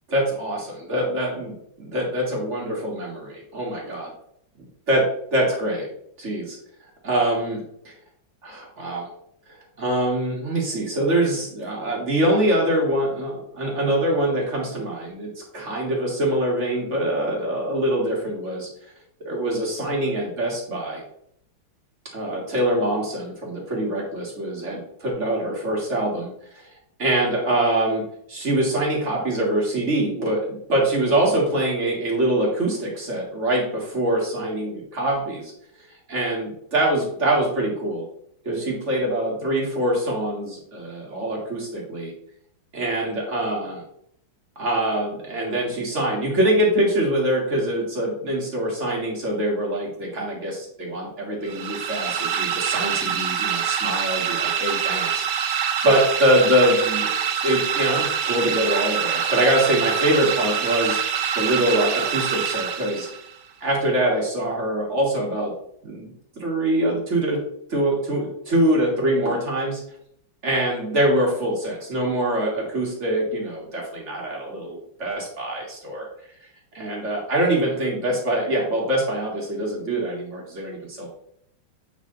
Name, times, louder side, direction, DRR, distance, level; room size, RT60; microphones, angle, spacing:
voice 1, 0.1-4.1 4.9-5.0 5.3-5.9 6.2-6.6 7.0-7.9 8.4-9.1 9.8-18.7 19.3-21.0 22.1-26.3 26.5-26.6 27.0-28.0 28.3-35.5 36.1-38.1 38.4-42.1 42.7-43.8 44.6-57.1 57.4-63.1 63.6-65.5 65.8-67.4 67.7-69.8 70.4-76.1 76.7-81.1, right 1 dB, 35° right, -3 dB, 2.0 m, -24 dB
sound 1, 51.5-63.3, right 8 dB, 90° right, 1.6 m, -25 dB
8.4 x 3.4 x 3.8 m, 0.70 s
omnidirectional pair, 2.2 m